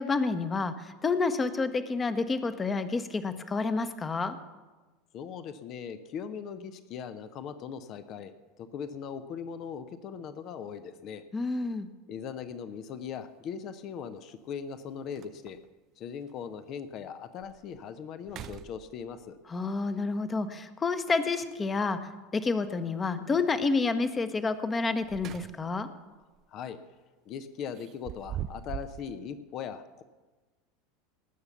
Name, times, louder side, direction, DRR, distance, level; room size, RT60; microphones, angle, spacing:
voice 1, 0.0-4.3 11.3-11.9 19.5-22.0 22.3-25.9, left 4 dB, 20° left, 10 dB, 1.1 m, -29 dB
voice 2, 5.1-11.2 12.1-15.6 16.0-19.4 26.5-26.8 27.2-30.0, left 7 dB, 45° left, 11 dB, 0.8 m, -40 dB
sound 1, 12.4-12.5 14.3-14.4 14.8-14.9 15.1-15.7 16.3-16.4 16.9-17.0 17.4-17.8 18.2-19.3 21.4-22.0 24.8-25.9 26.2-26.5 27.7-29.1, right 11 dB, 40° right, 0.4 m, -42 dB
19.0 x 7.0 x 6.9 m, 1.2 s
figure-of-eight pair, 75°, 0 cm